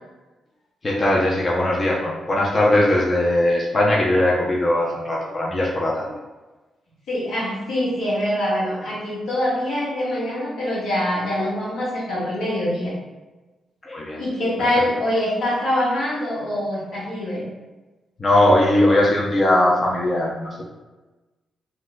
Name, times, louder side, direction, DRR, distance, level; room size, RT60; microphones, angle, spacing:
voice 1, 0.8-6.1 13.8-14.2 18.2-20.7, left 1 dB, 40° left, -4 dB, 0.6 m, -19 dB
voice 2, 7.1-13.0 14.2-17.4, left 1 dB, 80° left, -7 dB, 1.1 m, -24 dB
2.4 x 2.1 x 3.9 m, 1.2 s
supercardioid pair, 45°, 0 cm